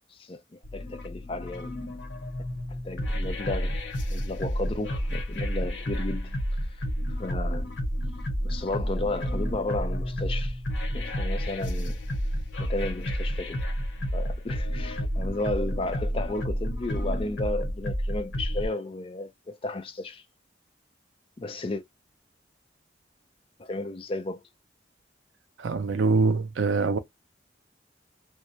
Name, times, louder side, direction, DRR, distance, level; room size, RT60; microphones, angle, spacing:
voice 1, 0.1-0.4 0.7-1.8 2.8-3.8 4.1-6.3 7.1-7.7 8.4-10.6 10.9-12.0 12.6-13.6 14.1-20.2 21.4-21.8 23.6-24.4, left 2 dB, 30° left, 0.4 m, -33 dB
sound 1, 0.6-18.7, equal, 85° left, 0.9 m, -30 dB
voice 2, 25.6-27.0, right 4 dB, 85° right, 0.4 m, -24 dB
2.2 x 2.0 x 2.7 m
head